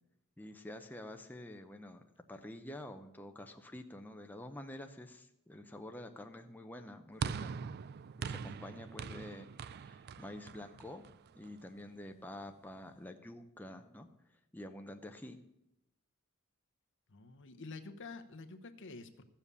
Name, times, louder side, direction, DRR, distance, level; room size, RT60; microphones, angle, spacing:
voice 1, 0.4-2.0 2.3-7.5 8.2-9.5 9.7-11.1 11.3-14.1 14.5-15.4, left 1 dB, 10° left, 5 dB, 0.6 m, -48 dB
sound 1, 7.2-11.6, right 6 dB, 50° right, 0.3 m, -42 dB
voice 2, 17.1-19.2, left 3 dB, 60° left, 9 dB, 0.9 m, -48 dB
14.0 x 7.3 x 6.8 m, 0.84 s
head